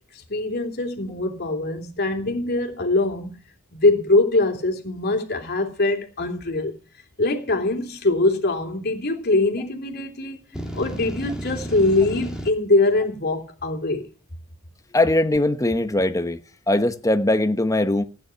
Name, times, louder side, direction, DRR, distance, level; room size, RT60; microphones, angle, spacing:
voice 1, 0.3-3.3 3.7-6.7 7.2-10.4 10.7-14.1, left 2 dB, 50° left, 3.1 m, -22 dB
sound 1, 10.5-12.5, equal, 5° right, 2.5 m, -33 dB
voice 2, 14.9-16.4 16.7-18.0, left 1 dB, 15° left, 1.1 m, -20 dB
16.0 x 9.8 x 5.7 m
head